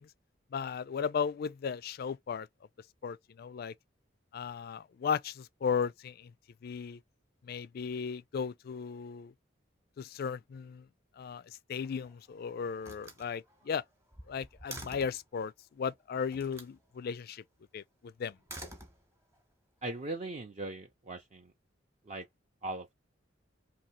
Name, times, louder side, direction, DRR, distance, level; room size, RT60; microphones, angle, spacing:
voice 1, 0.5-2.5 3.0-3.7 4.3-6.3 6.6-7.0 7.4-9.3 10.0-10.8 11.2-13.8 14.3-17.4 17.7-18.4, left 6 dB, 55° left, 0.3 m, -36 dB
Slam, 11.7-12.3 12.8-15.3 16.3-16.8 18.3-19.4, right 1 dB, 15° right, 0.9 m, -48 dB
voice 2, 19.8-21.5 22.0-22.3 22.6-22.9, right 2 dB, 35° right, 0.5 m, -39 dB
2.8 x 2.7 x 4.2 m
head